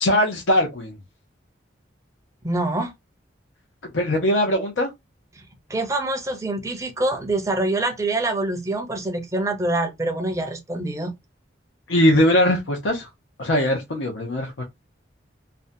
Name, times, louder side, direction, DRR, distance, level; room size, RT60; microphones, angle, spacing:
voice 1, 0.0-0.9 3.9-4.9 11.9-13.1 13.4-14.6, left 1 dB, 85° left, 0.6 m, -20 dB
voice 2, 2.4-2.9 5.4-5.5 5.7-11.1, right 2 dB, 15° right, 0.5 m, -25 dB
2.6 x 2.2 x 2.5 m
head